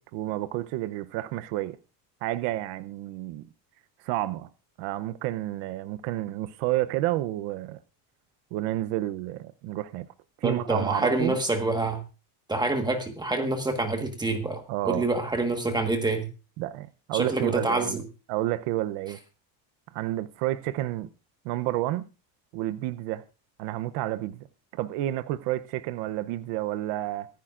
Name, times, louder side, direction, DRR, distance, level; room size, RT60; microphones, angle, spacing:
voice 1, 0.0-1.8 2.2-3.4 4.0-4.5 4.8-7.8 8.5-10.1 10.4-11.4 14.7-15.0 16.6-18.0 18.3-19.2 19.9-21.1 21.4-22.1 22.5-23.2 23.6-24.5 24.7-27.3, right 15 dB, 65° right, 0.8 m, -30 dB
voice 2, 10.4-12.0 12.5-16.3 17.1-18.0, right 2 dB, 10° right, 1.4 m, -27 dB
24.5 x 10.5 x 2.5 m
cardioid pair, 170°, 45 cm